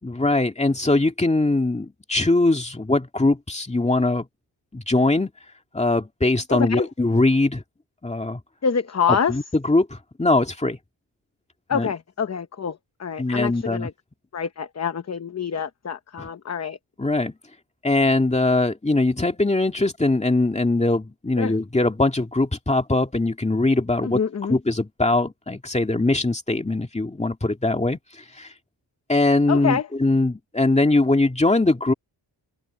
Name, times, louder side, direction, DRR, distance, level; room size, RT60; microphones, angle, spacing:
voice 1, 0.0-4.3 4.7-5.3 5.7-7.6 8.0-8.4 9.1-10.8 11.7-11.9 13.2-13.9 16.2-16.3 17.0-17.3 17.8-24.2 24.5-28.5 29.1-31.9, left 2 dB, 15° left, 2.3 m, -21 dB
voice 2, 6.5-6.8 8.6-9.3 11.7-13.9 14.3-16.8 21.4-21.5 24.0-24.6 29.5-29.9, left 6 dB, 35° left, 0.8 m, -26 dB
wide cardioid pair, 175°, 48 cm